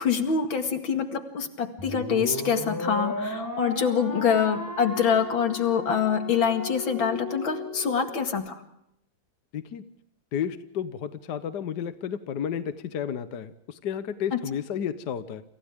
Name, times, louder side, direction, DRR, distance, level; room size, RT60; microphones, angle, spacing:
voice 1, 0.0-8.6 14.3-14.4, left 7 dB, 85° left, 6 dB, 2.9 m, -25 dB
sound 1, 1.8-8.3, left 1 dB, 10° left, 4.9 m, -35 dB
voice 2, 10.3-15.4, left 8 dB, 60° left, 11 dB, 1.5 m, -32 dB
29.5 x 28.0 x 3.6 m, 0.76 s
omnidirectional pair, 2.1 m